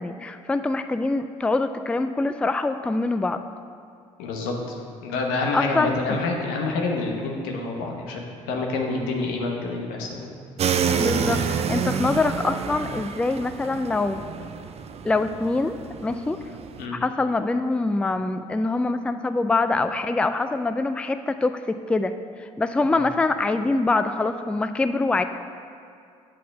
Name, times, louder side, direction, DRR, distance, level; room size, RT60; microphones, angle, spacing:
voice 1, 0.0-3.4 5.5-6.0 11.0-14.2 15.0-16.4 16.9-22.1 22.4-25.2, left 3 dB, 5° left, 9 dB, 0.3 m, -24 dB
voice 2, 4.2-10.3 16.8-17.0 22.9-23.0, left 3 dB, 80° left, 1 dB, 1.1 m, -28 dB
sound 1, 10.6-16.8, right 7 dB, 45° right, 0.5 m, -28 dB
7.5 x 4.2 x 6.1 m, 2.3 s
hypercardioid pair, 60°, 15 cm